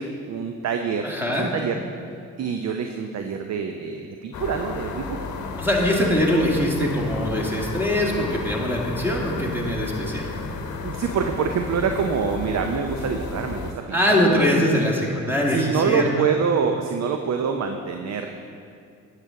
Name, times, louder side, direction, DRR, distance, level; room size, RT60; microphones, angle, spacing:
voice 1, 0.0-1.8 2.4-5.3 10.8-14.8 15.5-18.3, right 6 dB, 50° right, 5 dB, 0.6 m, -26 dB
voice 2, 1.0-1.5 5.6-10.3 13.9-16.1, left 1 dB, 5° right, -2 dB, 1.9 m, -22 dB
sound 1, 4.3-13.7, left 4 dB, 55° left, 0.9 m, -33 dB
9.9 x 7.4 x 3.8 m, 2.4 s
supercardioid pair, 65°, 35 cm